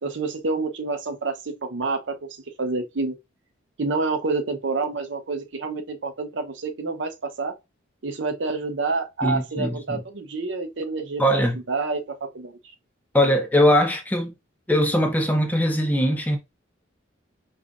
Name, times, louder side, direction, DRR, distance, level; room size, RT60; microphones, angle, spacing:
voice 1, 0.0-3.2 3.8-7.5 8.0-11.4 11.7-12.0 12.3-12.6, right 3 dB, 65° right, 0.6 m, -28 dB
voice 2, 9.2-10.0 11.2-11.6 13.1-14.3 14.7-16.4, equal, 10° left, 0.5 m, -21 dB
5.2 x 2.5 x 2.3 m
head